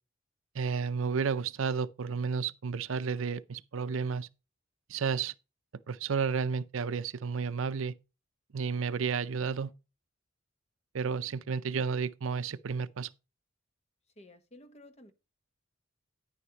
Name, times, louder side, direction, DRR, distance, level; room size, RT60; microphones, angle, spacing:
voice 1, 0.5-4.3 4.9-5.3 5.9-7.9 8.5-9.7 10.9-13.1, right 5 dB, 80° right, 0.5 m, -32 dB
voice 2, 14.2-15.1, left 1 dB, 30° left, 1.0 m, -53 dB
10.0 x 9.7 x 2.9 m
head